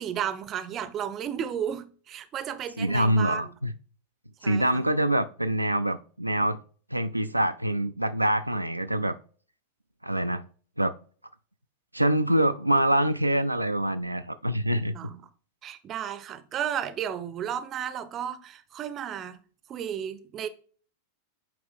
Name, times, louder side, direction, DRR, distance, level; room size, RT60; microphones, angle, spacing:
voice 1, 0.0-3.5 4.4-4.8 14.9-15.2 15.6-19.4 19.7-20.5, right 9 dB, 30° right, 0.6 m, -33 dB
voice 2, 2.8-3.7 4.4-6.6 6.9-9.1 10.0-10.4 10.8-10.9 11.9-14.9, right 1 dB, 85° right, 0.3 m, -25 dB
8.7 x 3.0 x 3.6 m
figure-of-eight pair, 90°, 0 cm